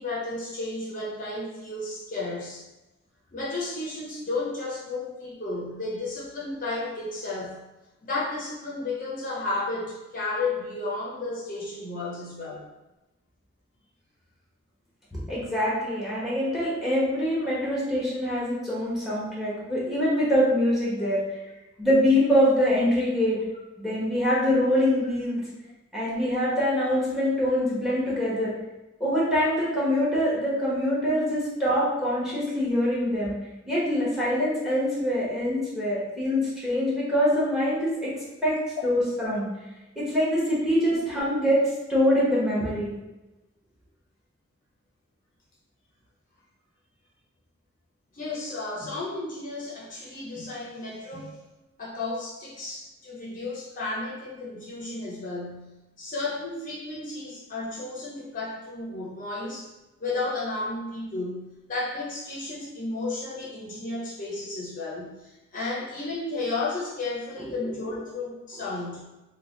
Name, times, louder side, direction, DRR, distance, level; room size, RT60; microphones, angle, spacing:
voice 1, 0.0-2.6 3.3-7.6 8.0-12.7 21.0-21.1 31.1-31.2 48.1-51.4 51.8-59.7 60.0-69.1, left 2 dB, 40° left, -5 dB, 0.5 m, -33 dB
voice 2, 15.1-21.2 21.8-23.4 23.8-25.4 25.9-28.5 29.0-33.3 33.7-38.1 38.4-38.6 38.8-39.5 39.9-41.6 41.9-42.9 67.6-67.7, equal, ahead, -7 dB, 1.0 m, -24 dB
3.3 x 2.2 x 3.7 m, 1.0 s
head